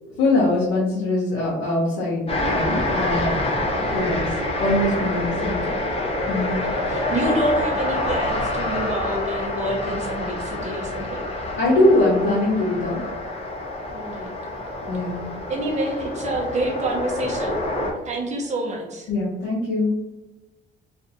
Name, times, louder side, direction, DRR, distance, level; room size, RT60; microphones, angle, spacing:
voice 1, 0.0-3.3 3.9-4.3 4.6-5.6 6.3-6.5 11.5-13.0 14.8-15.2 19.1-19.9, left 2 dB, 80° left, -6 dB, 0.8 m, -22 dB
sound 1, 2.3-17.9, left 1 dB, 30° left, 0.7 m, -27 dB
voice 2, 3.7-4.1 5.4-5.8 6.4-11.2 13.9-14.6 15.5-17.6 18.0-19.1, right 1 dB, 35° right, 0 dB, 0.8 m, -28 dB
2.5 x 2.4 x 2.7 m, 1.1 s
cardioid pair, 90°, 20 cm